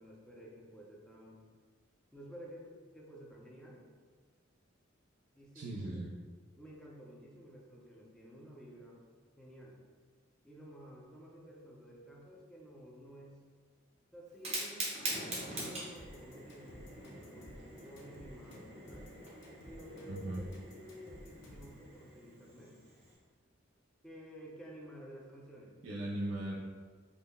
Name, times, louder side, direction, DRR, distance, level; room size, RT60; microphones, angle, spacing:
voice 1, 0.0-1.5 2.1-3.8 5.4-6.0 6.6-9.0 9.4-9.8 10.4-13.4 14.1-19.2 19.7-22.8 24.0-25.7, equal, 5° left, -3 dB, 0.5 m, -52 dB
voice 2, 5.5-6.1 20.1-20.4 25.8-26.6, right 1 dB, 75° right, -4 dB, 0.4 m, -38 dB
Fire, 14.3-23.2, right 1 dB, 30° right, 0.8 m, -44 dB
sound 1, 16.0-21.8, left 1 dB, 60° left, 0.7 m, -54 dB
5.2 x 2.1 x 2.2 m, 1.6 s
head